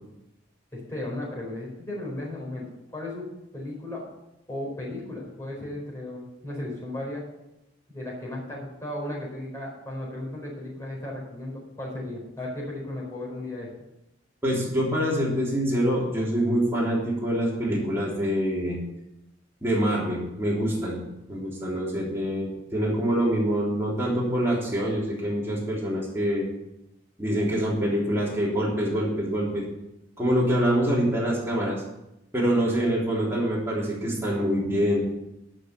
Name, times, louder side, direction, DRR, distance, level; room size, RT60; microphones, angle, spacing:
voice 1, 0.7-2.6 2.9-3.3 3.5-4.1 4.5-7.3 7.9-13.7, left 1 dB, 15° left, -4 dB, 4.5 m, -35 dB
voice 2, 14.4-18.8 19.6-21.0 21.3-26.5 27.2-29.6 30.2-31.8 32.3-35.0, equal, 15° right, -5 dB, 3.4 m, -25 dB
11.5 x 6.5 x 6.8 m, 0.90 s
head